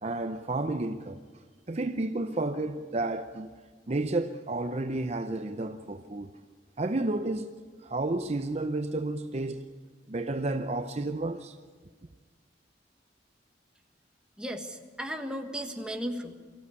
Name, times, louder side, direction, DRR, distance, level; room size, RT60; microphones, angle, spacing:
voice 1, 0.0-1.2 1.7-3.5 3.9-6.4 6.8-7.5 7.8-9.7 10.1-11.6, right 2 dB, 35° right, 0.6 m, -31 dB
voice 2, 14.4-16.3, equal, 5° right, 1.5 m, -35 dB
24.0 x 15.0 x 8.3 m
head